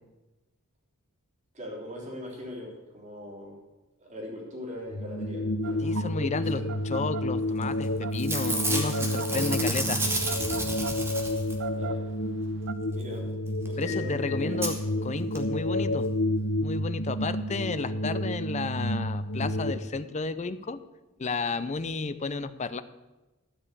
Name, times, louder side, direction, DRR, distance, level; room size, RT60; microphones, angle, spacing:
voice 1, 1.5-3.6 4.0-6.6 11.7-12.0 12.9-13.3 13.6-14.6 15.0-15.1, left 1 dB, 35° right, -4 dB, 3.8 m, -41 dB
sound 1, 4.9-19.7, left 1 dB, 85° left, 1.1 m, -30 dB
sound 2, 5.6-12.7, right 7 dB, 60° right, 0.6 m, -40 dB
voice 2, 5.8-6.6 6.9-10.0 13.8-14.8 15.0-16.1 16.6-20.8 21.2-22.8, left 4 dB, 30° left, 13 dB, 0.5 m, -32 dB
Packing tape duct tape / Tearing, 7.6-7.9 8.1-11.7 13.7-13.8 13.9-14.0 14.6-14.7 15.4-15.5 15.7-15.8, right 2 dB, 10° right, 1.6 m, -31 dB
13.0 x 5.4 x 8.4 m, 1.1 s
head